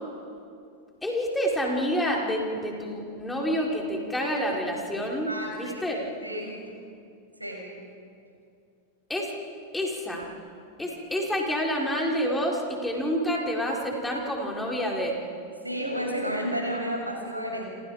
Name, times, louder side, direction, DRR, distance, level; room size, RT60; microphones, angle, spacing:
voice 1, 1.0-6.1 9.1-9.3 9.7-10.3 10.8-15.2, equal, 5° left, -2 dB, 5.1 m, -28 dB
voice 2, 5.3-5.8 6.2-6.6 7.4-7.7 15.6-17.6, equal, 85° right, 0 dB, 6.9 m, -31 dB
29.5 x 27.0 x 5.1 m, 2.4 s
figure-of-eight pair, 90°, 0 cm